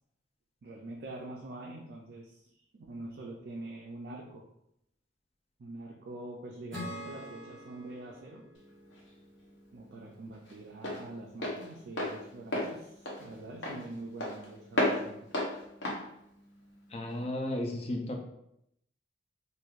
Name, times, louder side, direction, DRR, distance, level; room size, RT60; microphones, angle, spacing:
voice 1, 0.6-4.4 5.6-8.5 9.7-15.3, right 2 dB, 60° right, -1 dB, 0.4 m, -45 dB
Acoustic guitar / Strum, 6.7-10.2, equal, 5° left, 1.3 m, -46 dB
Walk footsteps, 8.6-17.2, left 1 dB, 75° left, 0.8 m, -35 dB
voice 2, 16.9-18.2, left 1 dB, 35° left, 1 dB, 0.5 m, -34 dB
3.1 x 2.5 x 2.4 m, 0.78 s
head